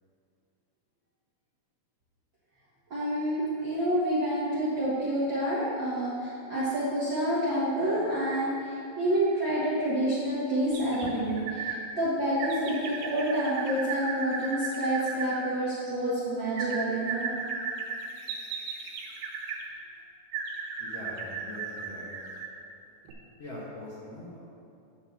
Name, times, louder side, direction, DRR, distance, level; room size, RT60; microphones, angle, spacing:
voice 1, 2.9-17.3, right 1 dB, 55° right, -10 dB, 1.4 m, -28 dB
sound 1, 10.7-11.8 12.4-15.4 16.6-19.7 20.3-22.6 23.1-23.2, right 5 dB, 85° right, 2.7 m, -36 dB
voice 2, 20.8-22.1 23.4-24.5, left 1 dB, 55° left, -7 dB, 1.8 m, -42 dB
8.8 x 3.9 x 6.9 m, 2.6 s
omnidirectional pair, 4.0 m